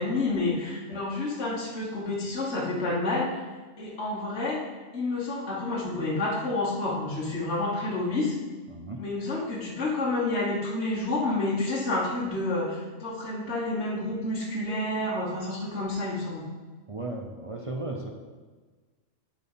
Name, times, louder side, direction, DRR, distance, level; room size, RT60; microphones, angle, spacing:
voice 1, 0.0-3.4 3.8-4.6 4.9-8.3 9.0-16.4, left 2 dB, 55° left, -5 dB, 1.6 m, -29 dB
voice 2, 8.7-9.1 16.9-18.1, right 2 dB, 30° right, 1 dB, 0.6 m, -35 dB
10.0 x 4.5 x 5.5 m, 1.3 s
omnidirectional pair, 1.4 m